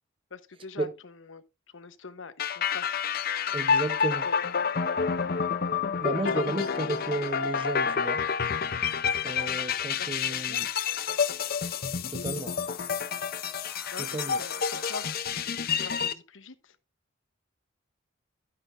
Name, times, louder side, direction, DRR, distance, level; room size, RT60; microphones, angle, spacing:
voice 1, 0.3-3.1 3.8-3.9 4.2-4.8 6.2-6.9 9.5-9.6 10.1-10.6 13.9-16.8, left 4 dB, 75° left, 1.0 m, -44 dB
sound 1, 2.4-16.1, left 6 dB, 50° left, 0.6 m, -29 dB
voice 2, 3.5-4.3 6.0-8.3 9.2-10.7 12.1-12.6 14.0-14.4, right 2 dB, 25° right, 0.7 m, -33 dB
Singing, 3.6-15.1, equal, 10° right, 1.8 m, -54 dB
12.0 x 9.7 x 2.5 m
head